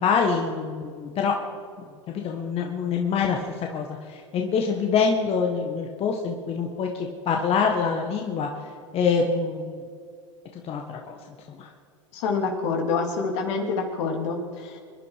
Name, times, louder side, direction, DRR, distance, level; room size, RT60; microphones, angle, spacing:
voice 1, 0.0-1.3 2.1-6.9 7.3-8.5 8.9-9.8 10.6-11.1 11.5-11.7, left 5 dB, 35° left, 2 dB, 1.8 m, -25 dB
voice 2, 12.1-14.8, left 4 dB, 65° left, 3 dB, 3.5 m, -27 dB
25.5 x 11.0 x 5.1 m, 2.2 s
hypercardioid pair, 105°, 17 cm